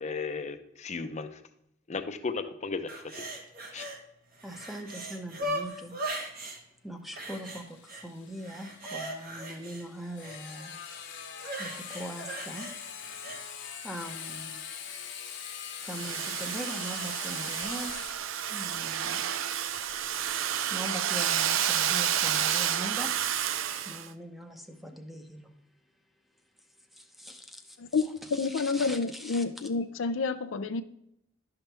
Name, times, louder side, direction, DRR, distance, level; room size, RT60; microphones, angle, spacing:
voice 1, 0.0-1.3 1.9-2.9 3.2-3.3 3.7-3.8, left 4 dB, 35° left, 9 dB, 0.6 m, -35 dB
sound 1, 2.9-4.0 4.3-6.6 7.2-8.0 8.4-10.4 11.4-13.4 13.9-14.0, right 1 dB, 50° right, 1.3 m, -38 dB
voice 2, 4.4-6.0 6.8-10.8 11.6-12.7 13.8-14.6 15.8-18.0 18.5-19.2 20.7-23.1 23.8-25.5 26.9-29.4, equal, ahead, 5 dB, 0.7 m, -41 dB
Sawing, 7.1-22.5, left 8 dB, 65° left, 1.0 m, -44 dB
Domestic sounds home sounds, 15.8-24.1, right 10 dB, 80° right, 0.5 m, -30 dB
voice 3, 27.8-30.8, left 4 dB, 85° left, 12 dB, 0.5 m, -29 dB
11.0 x 5.8 x 3.4 m, 0.80 s
head